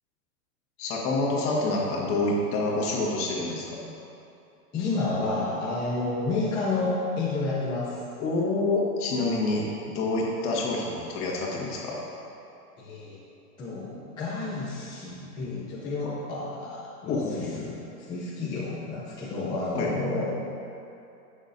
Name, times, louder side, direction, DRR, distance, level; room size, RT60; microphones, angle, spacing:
voice 1, 0.8-3.8 8.2-9.7 9.9-12.0 17.1-17.6 19.7-19.9, left 2 dB, 25° left, -3 dB, 1.6 m, -27 dB
voice 2, 4.7-8.0 12.8-13.2 13.6-17.8 18.1-20.3, left 3 dB, 10° left, -9 dB, 0.5 m, -30 dB
18.5 x 6.3 x 2.7 m, 2.7 s
supercardioid pair, 155°, 48 cm